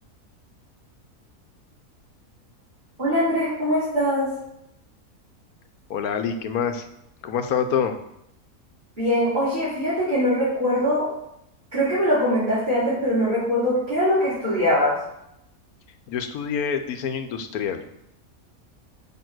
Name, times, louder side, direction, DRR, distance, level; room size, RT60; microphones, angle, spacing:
voice 1, 3.0-4.2 9.0-11.1 11.7-14.9, equal, 35° right, -13 dB, 4.1 m, -22 dB
voice 2, 5.9-6.9 7.2-8.0 16.1-17.8, left 7 dB, 80° left, 8 dB, 1.3 m, -26 dB
7.0 x 5.6 x 6.2 m, 0.80 s
omnidirectional pair, 1.5 m